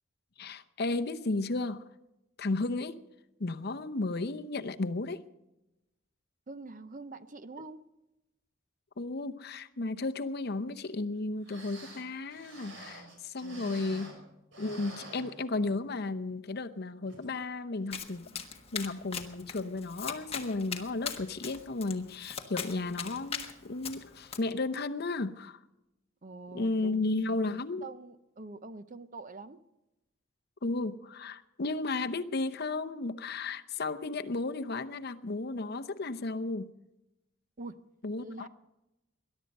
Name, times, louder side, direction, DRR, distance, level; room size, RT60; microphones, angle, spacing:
voice 1, 0.4-1.8 2.4-3.0 3.4-5.2 9.0-14.1 14.6-18.3 18.7-25.6 26.5-27.9 30.6-36.7 38.0-38.5, left 3 dB, 50° left, 0.8 m, -34 dB
voice 2, 6.5-7.8 13.4-13.9 26.2-27.0 27.8-29.6 37.6-37.8 38.2-38.5, right 3 dB, 40° right, 0.7 m, -45 dB
sound 1, 11.1-11.2 11.4-14.3 14.5-15.9 16.3-16.4 17.0-17.3 17.7-17.8, right 2 dB, 65° right, 5.5 m, -49 dB
Domestic sounds home sounds, 17.9-24.4, left 7 dB, 30° left, 1.4 m, -41 dB
21.0 x 11.5 x 5.4 m
head